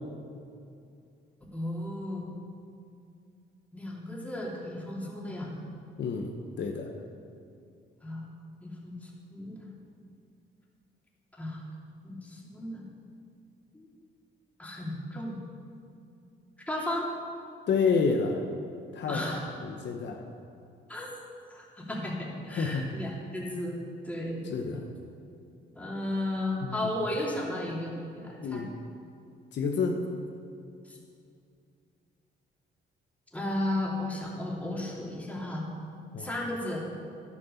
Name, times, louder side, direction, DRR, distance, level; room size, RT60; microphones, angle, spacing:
voice 1, 1.5-2.3 3.7-5.5 8.0-8.3 8.6-9.7 11.3-11.6 12.0-12.8 13.7-13.9 14.6-15.4 16.7-17.1 19.1-19.5 20.9-21.1 21.5-23.8 24.0-24.4 25.7-28.7 30.8-31.0 33.3-35.7 36.2-36.9, left 1 dB, 5° left, -4 dB, 3.2 m, -34 dB
voice 2, 6.0-6.9 17.7-18.4 18.9-20.2 22.6-22.9 24.5-24.8 26.6-26.8 28.4-28.7 29.5-30.0 36.1-36.3, left 5 dB, 65° left, 3 dB, 1.1 m, -29 dB
10.5 x 8.8 x 7.1 m, 2.5 s
cardioid pair, 90°, 20 cm